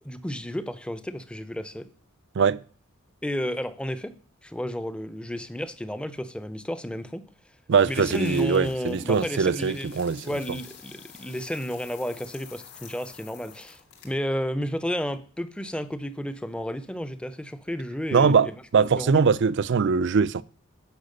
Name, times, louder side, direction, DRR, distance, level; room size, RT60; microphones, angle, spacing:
voice 1, 0.0-1.9 3.2-4.1 4.4-7.2 7.8-19.1, equal, 5° left, 0.6 m, -32 dB
sound 1, 7.7-14.3, left 7 dB, 55° left, 3.1 m, -49 dB
voice 2, 7.7-10.6 18.1-20.4, right 5 dB, 60° right, 0.4 m, -22 dB
10.5 x 5.7 x 6.6 m
head